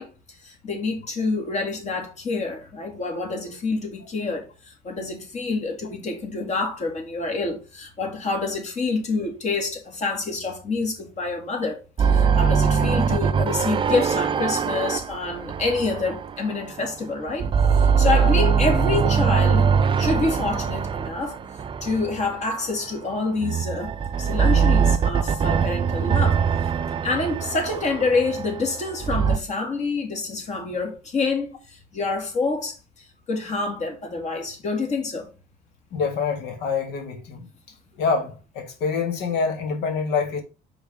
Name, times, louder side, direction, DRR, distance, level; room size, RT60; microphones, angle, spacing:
voice 1, 0.0-17.5 17.7-19.7 20.0-21.4 21.8-26.7 27.0-35.3, left 3 dB, 45° left, 2.1 m, -27 dB
sound 1, 12.0-16.9 17.3-22.6 23.4-29.4, right 6 dB, 30° right, 0.4 m, -22 dB
voice 2, 35.9-37.5 37.9-40.4, left 5 dB, 85° left, 1.6 m, -26 dB
5.2 x 3.6 x 5.0 m
cardioid pair, 110°, 17 cm